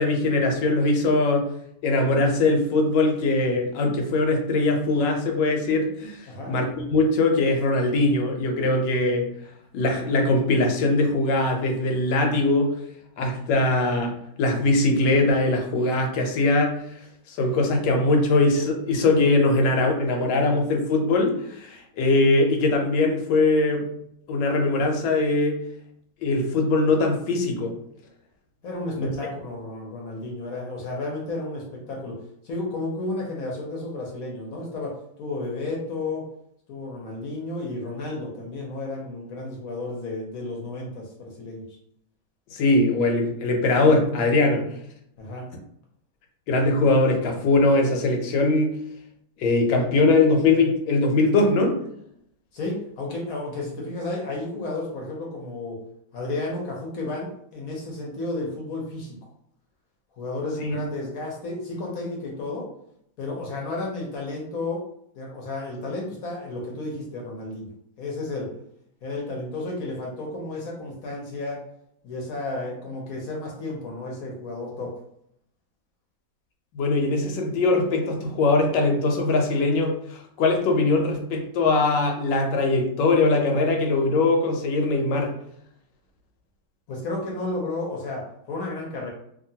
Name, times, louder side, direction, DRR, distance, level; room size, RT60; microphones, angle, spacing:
voice 1, 0.0-1.5 1.8-6.2 6.5-9.3 9.7-12.7 13.2-14.1 14.4-16.8 17.3-23.9 24.3-25.6 26.2-27.7 29.0-29.1 42.5-44.7 46.5-48.8 49.4-51.8 60.6-60.8 76.7-85.4, left 2 dB, 80° left, 2 dB, 1.3 m, -21 dB
voice 2, 28.6-36.3 36.7-41.6 45.2-45.4 52.5-55.8 56.1-59.2 60.1-62.7 63.2-64.8 65.2-67.7 68.0-68.5 69.0-71.6 72.0-74.9 86.9-89.1, left 2 dB, 65° left, -1 dB, 1.0 m, -32 dB
2.8 x 2.6 x 2.7 m, 0.72 s
omnidirectional pair, 1.9 m